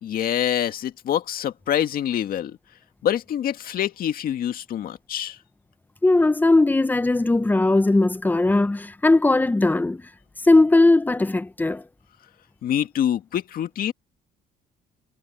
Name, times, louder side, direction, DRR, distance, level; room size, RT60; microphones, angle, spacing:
voice 1, 0.0-2.6 3.0-5.4 12.6-13.9, left 10 dB, 60° left, 2.0 m, -25 dB
voice 2, 6.0-10.0 10.4-11.8, left 2 dB, 10° left, 0.9 m, -18 dB
cardioid pair, 110°, 17 cm